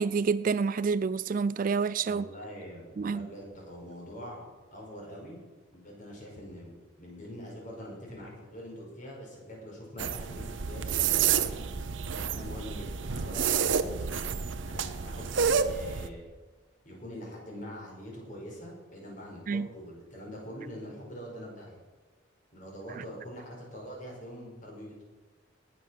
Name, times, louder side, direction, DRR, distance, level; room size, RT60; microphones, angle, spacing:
voice 1, 0.0-2.3 3.0-3.3 19.5-19.7, right 5 dB, 45° right, 0.3 m, -28 dB
voice 2, 2.0-5.4 5.7-11.8 12.3-13.9 14.6-16.2 16.8-21.8 22.5-25.1, equal, 40° left, 5.3 m, -44 dB
sound 1, 10.0-16.1, right 7 dB, 75° right, 0.8 m, -29 dB
19.0 x 7.4 x 6.5 m
head